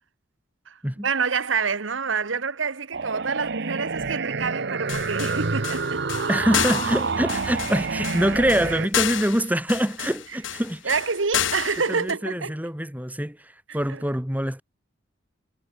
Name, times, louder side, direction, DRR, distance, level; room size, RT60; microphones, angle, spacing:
voice 1, 0.7-6.0 10.8-12.5 13.9-14.0, right 5 dB, 75° right, 1.3 m, -27 dB
sound 1, 2.9-8.9, right 4 dB, 60° right, 1.0 m, -28 dB
sound 2, 4.9-12.1, left 10 dB, 75° left, 1.4 m, -30 dB
voice 2, 6.3-10.9 11.9-14.6, equal, 10° right, 2.7 m, -25 dB
head